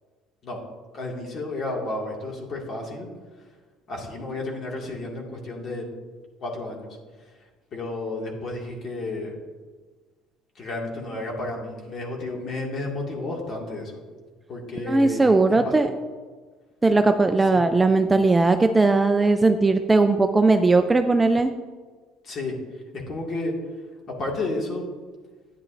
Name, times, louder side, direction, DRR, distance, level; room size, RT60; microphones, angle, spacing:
voice 1, 0.9-3.1 3.9-5.9 6.4-6.9 7.7-9.3 10.6-14.0 14.5-15.7 17.5-17.7 22.2-22.6 22.9-23.6 24.1-24.9, left 2 dB, 40° left, -1 dB, 2.0 m, -32 dB
voice 2, 14.8-15.9 16.8-21.5, right 3 dB, 15° right, 7 dB, 0.4 m, -19 dB
10.5 x 9.3 x 2.6 m, 1.4 s
cardioid pair, 125°, 0 cm